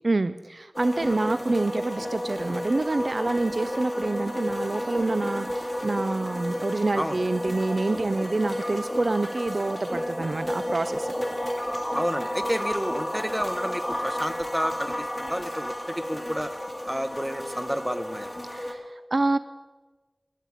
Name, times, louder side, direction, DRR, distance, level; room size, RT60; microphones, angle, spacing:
voice 1, 0.0-11.1 18.5-19.4, right 2 dB, 75° right, 13 dB, 0.4 m, -27 dB
sound 1, 0.7-18.7, equal, 10° left, 1.9 m, -32 dB
voice 2, 11.9-16.5 16.9-18.3, equal, 10° right, 9 dB, 1.0 m, -30 dB
22.0 x 8.3 x 4.9 m, 1.3 s
wide cardioid pair, 45°, 0 cm